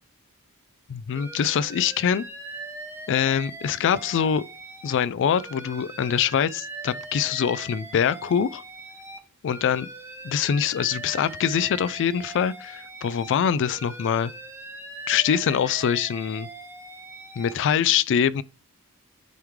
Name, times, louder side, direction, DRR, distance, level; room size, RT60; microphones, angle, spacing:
voice 1, 0.9-2.3 3.1-4.4 4.8-8.6 9.4-9.9 10.2-14.3 15.1-16.5 17.4-18.4, left 8 dB, 60° left, 0.3 m, -24 dB
Alarm, 1.1-5.0 5.3-9.2 9.5-13.4 13.6-17.5, right 2 dB, 10° right, 0.9 m, -40 dB
9.2 x 3.1 x 3.5 m
head